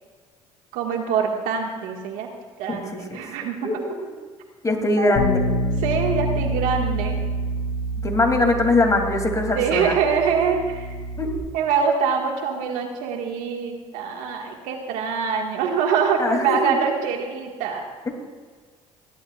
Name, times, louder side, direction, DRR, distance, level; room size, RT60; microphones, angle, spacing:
voice 1, 0.7-2.3 2.6-3.8 5.0-5.2 5.8-7.2 9.5-11.0 11.5-17.8, right 6 dB, 75° right, 2 dB, 1.9 m, -24 dB
voice 2, 2.7-3.2 3.6-4.0 4.6-5.4 8.0-9.9 11.2-11.4 16.2-16.8 18.1-18.2, left 2 dB, 25° left, 2 dB, 3.0 m, -22 dB
Bass guitar, 5.1-11.4, equal, 80° left, 3.4 m, -27 dB
29.0 x 11.5 x 2.5 m, 1.5 s
supercardioid pair, 70°, 14 cm